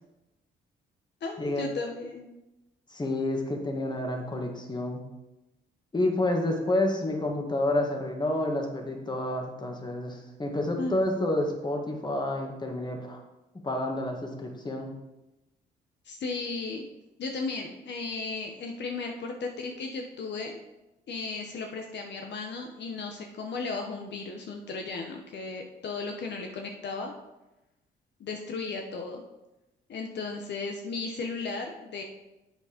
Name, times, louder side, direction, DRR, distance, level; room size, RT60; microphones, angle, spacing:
voice 1, 1.2-2.3 10.8-10.9 16.0-16.8 17.2-20.6 21.1-27.1 28.2-29.2 29.9-32.0, left 4 dB, 60° left, 3 dB, 1.1 m, -35 dB
voice 2, 2.9-5.0 5.9-13.2 13.6-14.9, left 1 dB, 20° left, 2 dB, 1.7 m, -29 dB
7.9 x 6.4 x 5.1 m, 0.98 s
cardioid pair, 90°, 20 cm